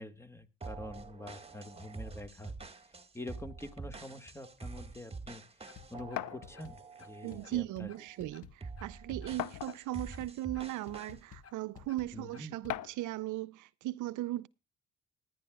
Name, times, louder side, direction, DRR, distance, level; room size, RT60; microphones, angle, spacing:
voice 1, 0.0-2.5 3.1-5.4 5.9-7.9 12.1-12.5, left 1 dB, 10° left, 1.7 m, -46 dB
sound 1, 0.6-7.6 7.9-8.2 8.6-11.2, right 4 dB, 20° right, 1.7 m, -47 dB
sound 2, 5.7-12.8, left 8 dB, 50° left, 1.4 m, -52 dB
sound 3, 6.2-6.4 7.6-7.7 8.1-8.2 9.4-10.0 10.9-11.0 12.7-13.1, left 14 dB, 85° left, 0.6 m, -38 dB
voice 2, 7.2-14.5, right 16 dB, 85° right, 0.6 m, -38 dB
19.5 x 11.5 x 2.3 m
cardioid pair, 90°, 30 cm